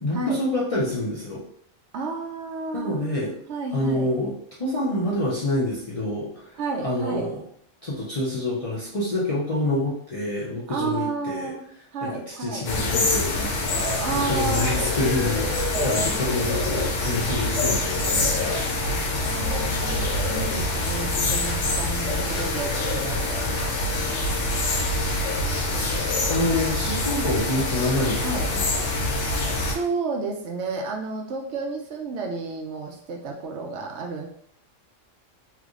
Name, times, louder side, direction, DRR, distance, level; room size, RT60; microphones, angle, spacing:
voice 1, 0.0-1.4 2.7-3.3 3.7-4.3 4.6-7.4 7.8-11.5 12.0-19.0 25.9-28.6, left 1 dB, 40° left, -7 dB, 0.5 m, -27 dB
voice 2, 1.9-4.1 6.6-7.3 10.7-11.7 11.9-12.7 14.0-14.8 15.7-16.3 19.2-23.4 28.2-28.4 29.7-34.3, right 4 dB, 70° right, 1 dB, 0.8 m, -31 dB
sound 1, 12.6-29.7, left 2 dB, 75° left, 1.0 m, -25 dB
3.3 x 3.0 x 2.4 m, 0.67 s
omnidirectional pair, 1.3 m